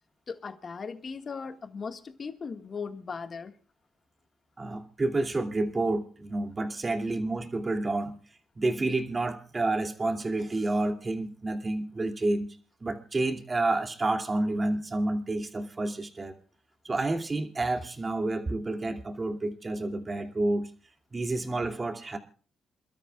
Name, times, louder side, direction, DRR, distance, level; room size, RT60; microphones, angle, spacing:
voice 1, 0.3-3.5, left 5 dB, 45° left, 1.7 m, -38 dB
voice 2, 4.6-8.2 8.6-16.4 16.8-20.7 21.1-22.2, right 2 dB, 25° right, 2.7 m, -29 dB
28.5 x 13.0 x 2.4 m
cardioid pair, 90°, 0 cm